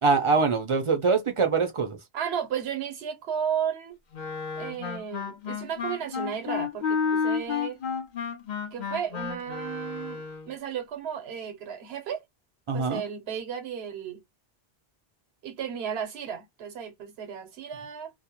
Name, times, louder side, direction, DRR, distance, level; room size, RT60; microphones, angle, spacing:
voice 1, 0.0-2.0 12.7-13.0, right 4 dB, 45° right, 0.4 m, -23 dB
voice 2, 2.1-4.0 4.6-7.8 8.7-12.2 12.7-14.2 15.4-18.2, right 8 dB, 85° right, 1.0 m, -34 dB
Wind instrument woodwind instrument, 4.1-10.5, left 6 dB, 55° left, 0.6 m, -31 dB
2.3 x 2.1 x 2.8 m
omnidirectional pair, 1.0 m